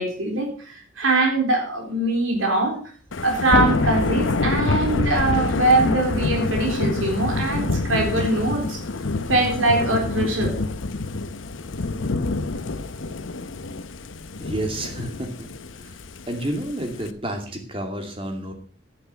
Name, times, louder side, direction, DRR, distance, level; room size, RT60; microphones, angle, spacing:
voice 1, 0.0-2.8 3.2-8.8 9.3-10.6, right 2 dB, 90° right, 2 dB, 3.9 m, -22 dB
Thunder / Rain, 3.1-17.1, left 3 dB, 80° left, 0.8 m, -26 dB
voice 2, 14.4-15.5 15.8-15.9 16.3-18.5, right 1 dB, 25° right, 4 dB, 2.5 m, -30 dB
10.5 x 10.5 x 5.7 m, 0.42 s
head